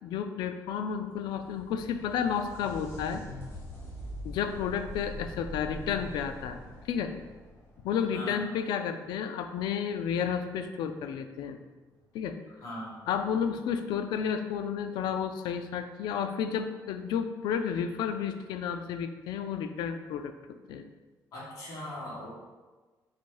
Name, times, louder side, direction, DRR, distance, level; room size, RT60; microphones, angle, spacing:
voice 1, 0.0-3.2 4.2-6.6 6.8-7.1 7.8-11.6 12.1-12.4 13.1-20.3 20.7-20.9, left 7 dB, 85° left, 8 dB, 0.3 m, -31 dB
sound 1, 1.0-8.6 12.0-12.1 13.1-13.2, equal, 35° left, 1.1 m, -43 dB
voice 2, 8.1-8.5 12.6-13.0 21.3-22.3, left 1 dB, 55° left, -7 dB, 1.4 m, -39 dB
4.1 x 2.6 x 4.6 m, 1.3 s
cardioid pair, 175°, 7 cm